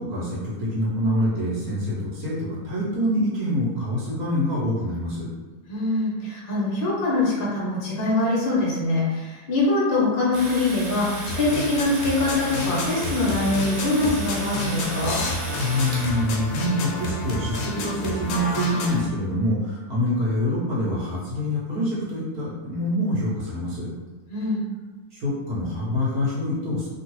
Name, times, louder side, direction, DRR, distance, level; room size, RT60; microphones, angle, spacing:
voice 1, 0.0-5.3 15.6-23.9 25.2-26.9, left 1 dB, 75° right, -8 dB, 1.5 m, -25 dB
voice 2, 5.7-15.2 24.3-24.6, left 2 dB, 45° left, -5 dB, 0.8 m, -23 dB
Domestic sounds home sounds, 10.3-16.3, right 1 dB, 55° right, 0.7 m, -34 dB
sound 1, 11.3-19.0, left 2 dB, 75° left, 1.0 m, -30 dB
3.1 x 2.4 x 3.0 m, 1.2 s
omnidirectional pair, 1.6 m